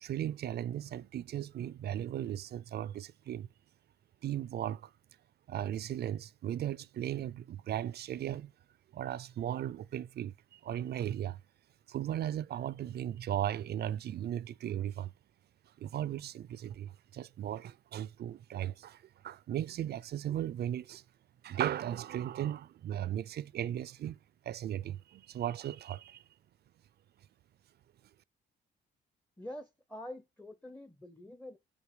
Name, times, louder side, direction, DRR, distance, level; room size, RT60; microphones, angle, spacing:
voice 1, 0.0-3.5 4.2-4.9 5.5-8.5 8.9-11.4 11.9-15.1 15.8-19.0 19.2-21.0 21.4-24.2 24.5-26.2, right 11 dB, 55° right, 0.4 m, -36 dB
voice 2, 29.4-31.6, left 1 dB, 5° left, 0.6 m, -46 dB
7.3 x 5.1 x 4.7 m
cardioid pair, 90°, 20 cm